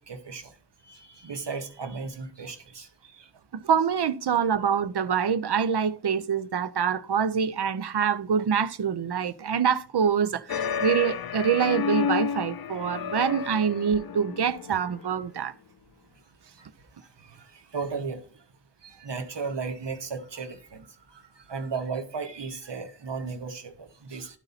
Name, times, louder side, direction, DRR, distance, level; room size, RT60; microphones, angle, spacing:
voice 1, 0.1-0.5 0.9-3.3 17.2-18.2 18.8-24.4, right 4 dB, 90° right, 1.1 m, -35 dB
voice 2, 3.6-15.5, right 7 dB, 70° right, 0.6 m, -25 dB
sound 1, 10.5-15.2, left 7 dB, 60° left, 0.5 m, -31 dB
11.5 x 4.0 x 4.0 m
wide cardioid pair, 55°, 41 cm